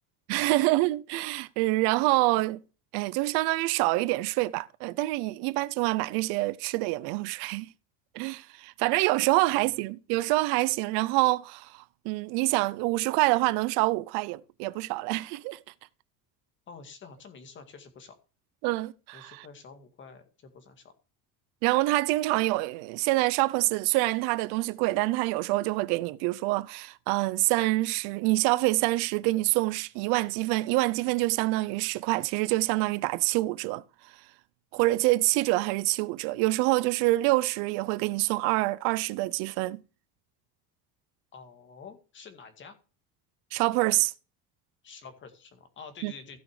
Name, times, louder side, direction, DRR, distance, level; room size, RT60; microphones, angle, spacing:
voice 1, 0.3-2.6 2.9-7.7 8.1-11.7 12.0-15.6 18.6-19.5 21.6-33.8 34.7-39.8 43.5-44.1 46.0-46.1, right 20 dB, 80° right, 0.8 m, -26 dB
voice 2, 9.4-9.7 16.7-18.2 19.1-20.9 41.3-42.8 44.8-46.4, left 5 dB, 30° left, 2.1 m, -48 dB
15.5 x 6.3 x 5.0 m
cardioid pair, 175°, 39 cm